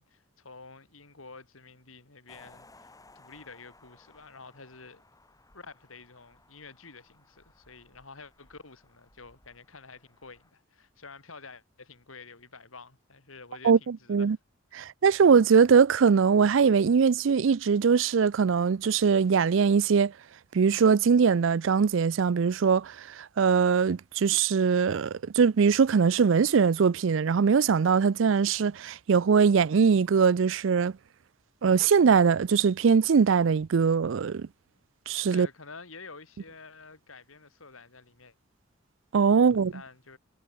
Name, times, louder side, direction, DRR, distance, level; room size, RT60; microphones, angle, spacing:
voice 1, 0.0-5.0 5.5-14.4 35.3-38.3 39.3-40.2, left 4 dB, 90° left, 3.6 m, -49 dB
sound 1, 2.3-10.5, left 2 dB, 15° left, 4.4 m, -59 dB
voice 2, 13.6-14.4 14.7-20.1 20.5-30.9 31.6-34.5 35.1-35.5 39.1-39.7, right 6 dB, 70° right, 0.4 m, -22 dB
head